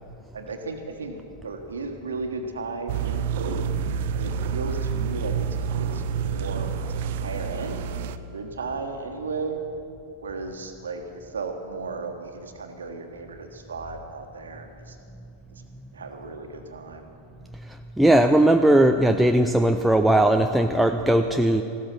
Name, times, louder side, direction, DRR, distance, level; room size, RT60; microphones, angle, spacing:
voice 1, 0.3-3.7 4.2-7.9 8.2-9.6 10.2-15.0 15.5-15.6 15.9-17.1, right 4 dB, 70° right, 5 dB, 1.4 m, -35 dB
sound 1, 2.9-8.2, right 6 dB, 55° right, 0.6 m, -28 dB
voice 2, 17.7-21.6, right 1 dB, 5° right, 5 dB, 0.5 m, -19 dB
15.5 x 13.0 x 6.0 m, 2.6 s
figure-of-eight pair, 90°, 0 cm